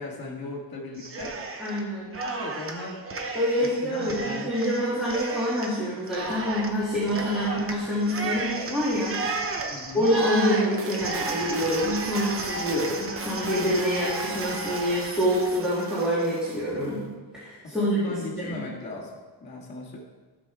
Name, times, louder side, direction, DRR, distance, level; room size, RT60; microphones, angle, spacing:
voice 1, 0.0-1.4 2.2-3.1 3.6-4.5 7.1-7.2 9.7-10.1 17.6-20.0, left 2 dB, 25° left, -8 dB, 1.7 m, -38 dB
Cheering, 1.0-1.8 2.1-16.6, right 3 dB, 30° right, 0.9 m, -33 dB
voice 2, 1.6-2.1 3.3-9.2 9.9-17.0 17.3-18.0 18.4-18.6, equal, ahead, -11 dB, 2.3 m, -26 dB
15.5 x 6.3 x 3.5 m, 1.4 s
wide cardioid pair, 165°, 42 cm